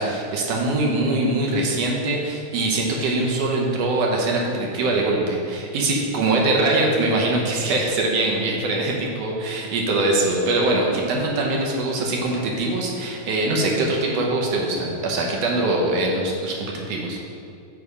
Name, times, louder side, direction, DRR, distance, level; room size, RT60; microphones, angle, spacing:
voice 1, 0.0-17.2, right 2 dB, 70° right, -1 dB, 1.8 m, -22 dB
8.3 x 3.3 x 4.8 m, 2.5 s
omnidirectional pair, 3.4 m